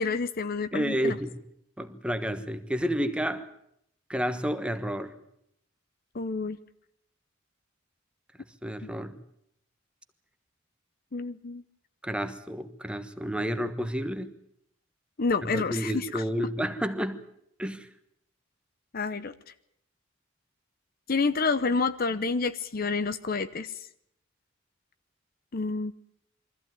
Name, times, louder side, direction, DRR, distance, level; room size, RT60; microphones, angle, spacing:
voice 1, 0.0-1.2 6.1-6.6 11.1-11.6 15.2-16.2 18.9-19.3 21.1-23.7 25.5-25.9, left 4 dB, 50° left, 0.7 m, -28 dB
voice 2, 0.7-1.4 1.8-3.5 4.1-5.1 8.6-9.2 12.0-14.3 15.4-17.2 17.6-17.9, equal, 5° right, 1.2 m, -30 dB
23.5 x 14.5 x 9.4 m
head